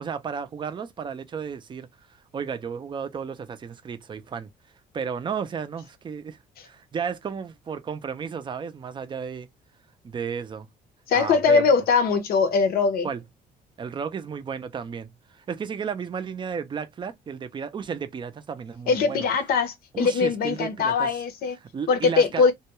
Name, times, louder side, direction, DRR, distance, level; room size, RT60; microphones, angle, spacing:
voice 1, 0.0-1.9 2.3-4.5 4.9-6.4 6.6-9.5 10.0-10.7 11.1-11.7 13.0-13.2 13.8-19.3 19.9-21.2 21.6-22.5, right 6 dB, 30° right, 0.4 m, -33 dB
voice 2, 11.1-13.1 18.9-21.6 21.9-22.5, left 5 dB, 65° left, 0.7 m, -21 dB
2.3 x 2.2 x 2.8 m
cardioid pair, 110°, 17 cm